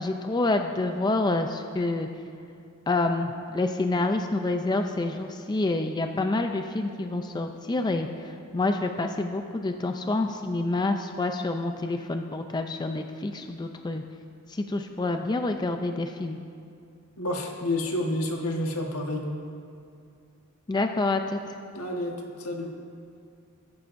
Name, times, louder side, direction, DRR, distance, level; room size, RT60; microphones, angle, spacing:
voice 1, 0.0-2.1 2.9-14.0 14.5-16.4 20.7-21.4, left 2 dB, 20° left, 5 dB, 0.4 m, -27 dB
voice 2, 17.2-19.2 21.7-22.7, left 1 dB, 75° left, 1 dB, 1.4 m, -29 dB
21.0 x 9.5 x 2.6 m, 2.4 s
head